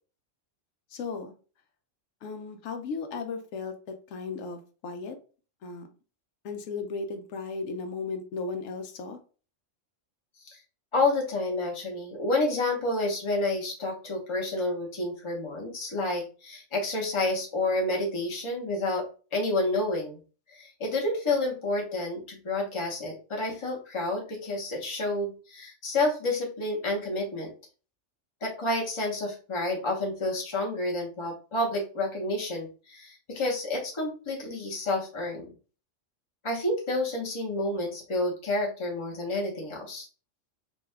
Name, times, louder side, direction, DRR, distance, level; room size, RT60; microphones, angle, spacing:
voice 1, 0.9-1.4 2.2-5.2 5.6-5.9 6.4-9.2, left 4 dB, 90° left, 6 dB, 1.0 m, -36 dB
voice 2, 10.9-19.0 19.3-20.2 20.5-27.5 28.4-35.5 36.4-40.1, left 2 dB, 25° left, -1 dB, 0.8 m, -29 dB
2.7 x 2.3 x 3.2 m, 0.37 s
omnidirectional pair, 1.3 m